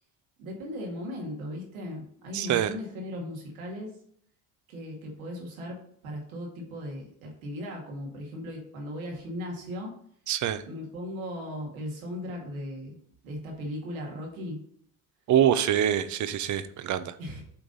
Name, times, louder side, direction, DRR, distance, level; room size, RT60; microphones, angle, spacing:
voice 1, 0.4-3.9 4.7-9.9 10.7-13.0 13.2-14.6 17.2-17.4, left 1 dB, 85° right, 0 dB, 2.2 m, -37 dB
voice 2, 2.3-2.7 10.3-10.6 15.3-17.1, right 10 dB, 45° right, 13 dB, 0.7 m, -25 dB
8.1 x 3.9 x 4.0 m, 0.65 s
hypercardioid pair, 70°, 42 cm